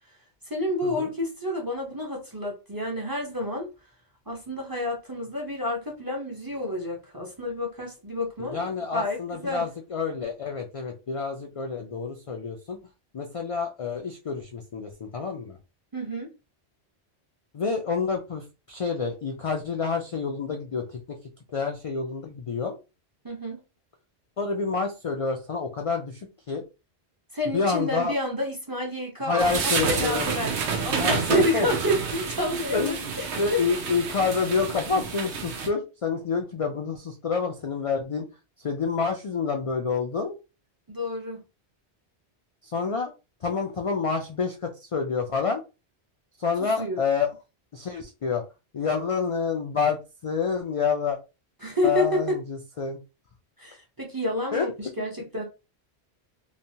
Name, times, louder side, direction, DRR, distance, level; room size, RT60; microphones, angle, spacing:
voice 1, 0.5-3.7 4.3-9.7 15.9-16.3 23.2-23.6 27.3-33.6 40.9-41.4 46.6-47.0 51.6-52.4 53.6-55.4, left 1 dB, 25° right, 0.5 m, -29 dB
voice 2, 8.4-12.8 13.1-15.6 17.5-21.2 21.5-22.8 24.4-26.6 27.5-28.1 29.2-30.3 31.0-31.7 32.7-33.1 33.4-38.3 38.6-40.4 42.6-43.1 43.4-45.6 46.4-47.3 47.7-48.4 48.7-51.2 51.8-53.0 54.5-54.7 55.0-55.1, left 5 dB, 60° left, 0.3 m, -28 dB
sound 1, 29.4-35.7, right 5 dB, 85° right, 1.0 m, -29 dB
3.1 x 2.2 x 2.7 m
omnidirectional pair, 1.1 m